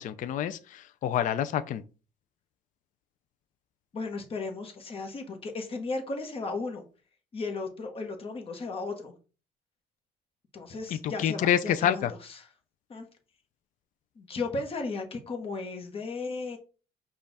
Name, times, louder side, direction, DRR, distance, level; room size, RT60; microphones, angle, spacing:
voice 1, 0.0-1.8 11.0-12.1, left 10 dB, 50° left, 0.4 m, -27 dB
voice 2, 3.9-6.9 7.3-9.1 10.5-12.5 12.9-13.1 14.2-16.6, left 3 dB, 35° left, 1.1 m, -35 dB
5.3 x 2.4 x 4.0 m
cardioid pair, 110°, 17 cm